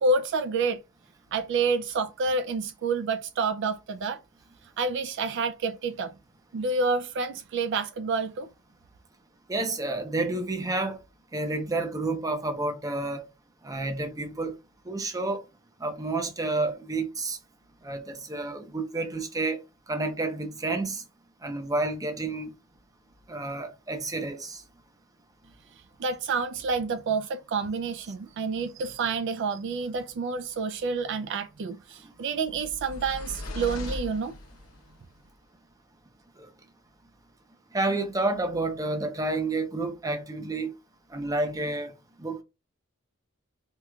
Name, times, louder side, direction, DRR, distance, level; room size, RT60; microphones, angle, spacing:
voice 1, 0.0-0.8 1.3-4.2 4.8-6.1 6.5-8.5 26.0-34.4, right 4 dB, 60° right, 0.4 m, -28 dB
voice 2, 9.5-11.0 11.3-13.2 13.6-14.5 14.9-15.4 15.8-17.4 17.8-19.6 19.9-21.0 21.4-22.5 23.3-24.6 37.7-40.7 41.1-41.9 42.2-42.4, right 2 dB, 15° right, 0.6 m, -30 dB
sound 1, 32.5-34.9, left 2 dB, 85° left, 0.9 m, -38 dB
4.5 x 2.3 x 2.3 m
head